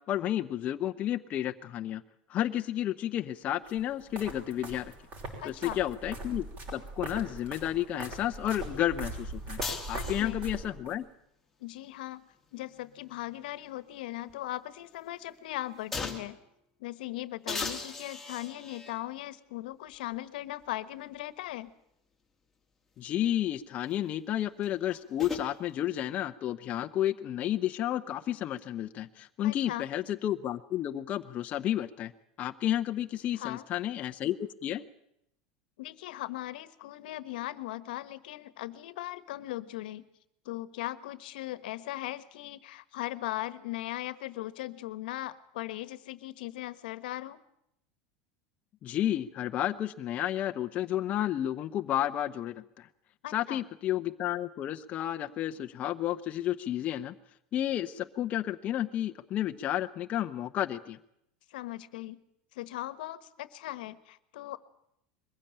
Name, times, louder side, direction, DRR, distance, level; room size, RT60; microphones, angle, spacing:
voice 1, 0.1-2.0 2.3-4.9 5.4-6.5 6.7-9.6 9.9-11.0 23.0-32.1 32.4-34.8 48.8-52.9 53.3-57.1 57.5-61.0, left 12 dB, 30° left, 7 dB, 0.8 m, -31 dB
sound 1, 3.7-11.0, right 2 dB, 35° right, 6.1 m, -41 dB
voice 2, 5.4-5.8 9.9-10.4 11.6-16.4 16.8-21.7 29.4-29.9 33.4-33.6 35.8-40.1 40.4-47.4 53.2-53.6 61.5-62.2 62.5-64.6, left 16 dB, 80° left, 15 dB, 1.2 m, -39 dB
sound 2, 9.6-10.6 12.3-13.9 14.3-14.4 15.9-16.4 17.5-19.0 19.9-20.0 24.6-25.5, left 4 dB, 5° left, 2.1 m, -39 dB
22.0 x 15.5 x 8.9 m, 0.77 s
supercardioid pair, 160°, 5 cm